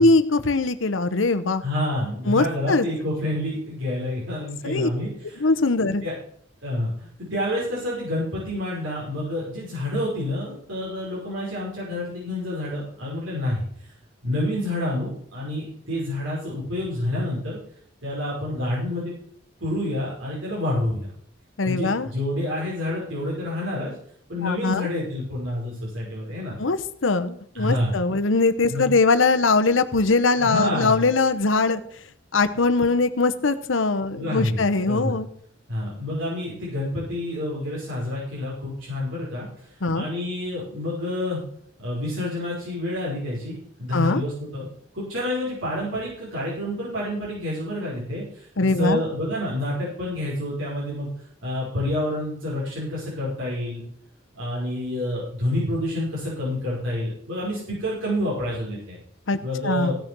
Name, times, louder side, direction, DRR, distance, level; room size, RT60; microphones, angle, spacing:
voice 1, 0.0-1.6 2.3-2.8 4.6-4.9 5.4-6.0 21.6-22.1 24.4-24.9 26.6-31.8 32.3-35.3 39.8-40.1 43.9-44.2 48.6-49.0 59.3-59.4 59.6-60.0, left 3 dB, 80° left, 11 dB, 0.9 m, -21 dB
voice 2, 1.6-5.5 5.8-6.1 6.6-13.6 14.2-17.6 18.0-19.1 19.6-21.1 21.6-23.9 24.3-26.6 27.5-28.0 28.7-29.0 30.4-31.1 34.1-34.6 34.9-35.2 35.7-39.7 39.9-41.4 41.8-44.7 44.9-51.1 51.4-53.8 54.3-59.0 59.4-59.9, left 1 dB, 85° right, -7 dB, 5.3 m, -28 dB
16.0 x 6.4 x 6.1 m, 0.63 s
head